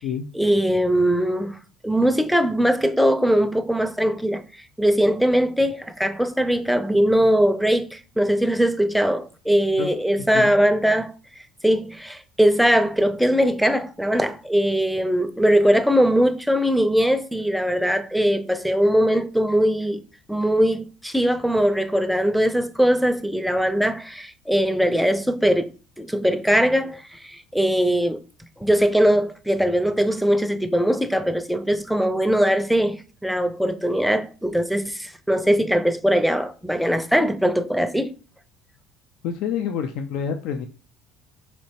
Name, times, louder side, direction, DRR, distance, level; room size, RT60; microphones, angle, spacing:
voice 1, 0.3-1.6 1.8-4.4 4.8-11.1 11.6-20.0 20.3-25.7 26.0-28.2 28.6-38.1, equal, ahead, 0.5 m, -21 dB
voice 2, 39.2-40.7, left 7 dB, 70° left, 0.4 m, -27 dB
4.4 x 2.9 x 2.8 m
supercardioid pair, 80°, 0 cm